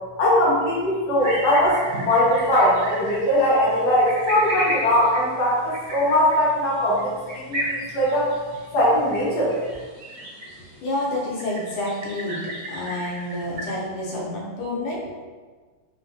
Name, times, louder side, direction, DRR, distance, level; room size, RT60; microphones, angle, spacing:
voice 1, 0.2-7.1 7.3-8.3 8.7-9.6, left 1 dB, 60° left, -6 dB, 1.2 m, -20 dB
sound 1, 1.2-13.9, equal, 50° right, 1.7 m, -34 dB
voice 2, 10.8-12.4 12.7-15.1, left 1 dB, 85° left, -4 dB, 1.8 m, -28 dB
3.9 x 2.3 x 2.6 m, 1.4 s
omnidirectional pair, 2.4 m